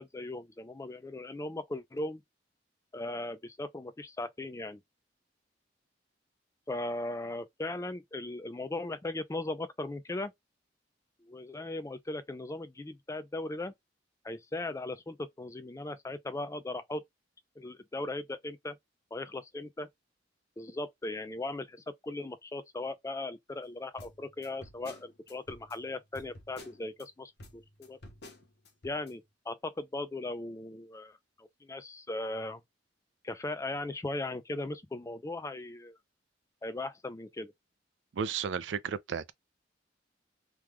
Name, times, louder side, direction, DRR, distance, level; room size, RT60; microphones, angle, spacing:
voice 1, 0.0-2.2 2.9-4.8 6.7-10.3 11.2-13.7 14.2-17.0 17.6-18.8 19.1-19.9 20.6-28.0 28.8-32.6 33.2-36.0 36.6-37.5, left 2 dB, 15° left, 0.4 m, -38 dB
sound 1, 24.0-27.1 27.4-29.1, left 1 dB, 60° left, 1.0 m, -51 dB
voice 2, 38.2-39.3, right 7 dB, 80° right, 0.4 m, -33 dB
3.0 x 2.2 x 3.5 m
head